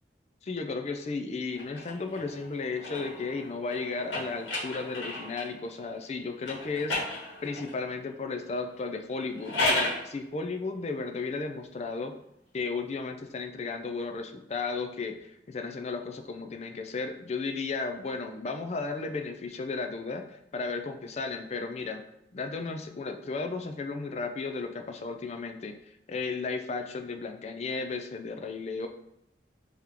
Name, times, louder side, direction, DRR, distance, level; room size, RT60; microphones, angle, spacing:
voice 1, 0.4-12.1 12.5-22.0 22.3-25.8 26.1-28.9, left 4 dB, 35° left, 6 dB, 0.4 m, -34 dB
sound 1, 1.5-5.6 6.4-7.8 9.2-10.1, left 1 dB, 90° left, 1.5 m, -33 dB
3.5 x 2.9 x 3.6 m, 0.79 s
head